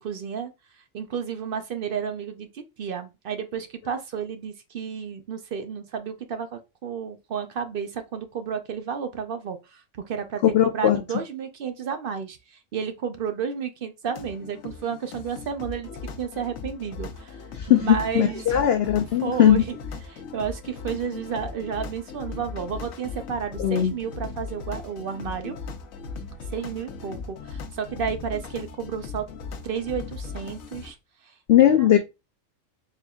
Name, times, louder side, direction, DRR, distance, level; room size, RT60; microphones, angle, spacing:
voice 1, 0.0-0.5 0.9-10.4 10.7-15.9 16.2-17.4 17.7-18.6 19.2-19.8 20.0-25.6 26.5-29.3 29.6-31.0 31.2-31.3 31.8-31.9, right 7 dB, 55° right, 0.7 m, -32 dB
voice 2, 10.4-11.0 17.5-19.6 23.6-23.9 31.5-32.0, left 11 dB, 65° left, 0.7 m, -19 dB
sound 1, 14.1-30.9, left 5 dB, 85° left, 1.1 m, -38 dB
4.4 x 3.5 x 2.3 m
omnidirectional pair, 1.4 m